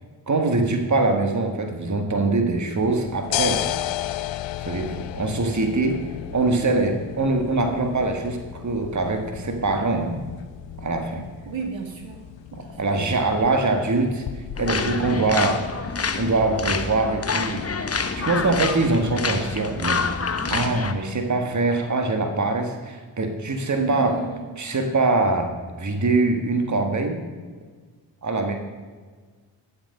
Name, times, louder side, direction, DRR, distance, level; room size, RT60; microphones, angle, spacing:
voice 1, 0.3-3.7 4.6-6.0 6.3-10.2 10.8-11.3 12.5-14.2 14.6-15.6 16.2-17.7 18.1-20.0 20.5-24.2 24.6-25.5 25.8-27.2 28.2-28.5, right 3 dB, 40° right, 5 dB, 1.7 m, -23 dB
sound 1, 2.8-14.9, left 13 dB, 75° left, 0.6 m, -34 dB
voice 2, 11.5-12.2 12.5-12.9 14.0-14.1 23.8-24.4, right 5 dB, 75° right, 3 dB, 1.8 m, -31 dB
sound 2, 14.6-20.9, left 4 dB, 30° left, 1.0 m, -27 dB
11.5 x 7.8 x 5.4 m, 1.5 s
cardioid pair, 50°, 46 cm